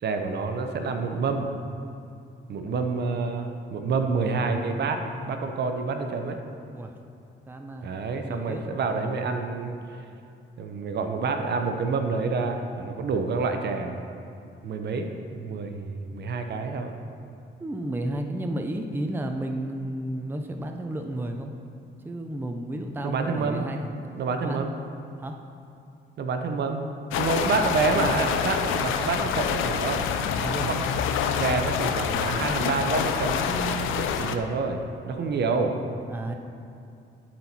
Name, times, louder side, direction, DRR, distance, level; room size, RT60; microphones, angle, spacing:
voice 1, 0.0-1.5 2.5-6.4 7.8-9.8 10.6-14.0 14.6-16.9 23.0-23.6 24.1-24.7 26.2-26.8 27.2-30.0 30.6-30.9 31.4-34.8 35.1-35.7, right 4 dB, 60° right, 5 dB, 0.8 m, -28 dB
voice 2, 7.5-7.9 8.2-8.6 17.6-21.5 22.0-23.9 24.4-24.7 25.2-25.4 30.4-30.7 36.1-36.4, right 1 dB, 10° right, 4 dB, 0.5 m, -32 dB
sound 1, 27.1-34.4, left 7 dB, 85° left, 0.5 m, -27 dB
12.0 x 4.5 x 4.2 m, 2.5 s
cardioid pair, 90°, 20 cm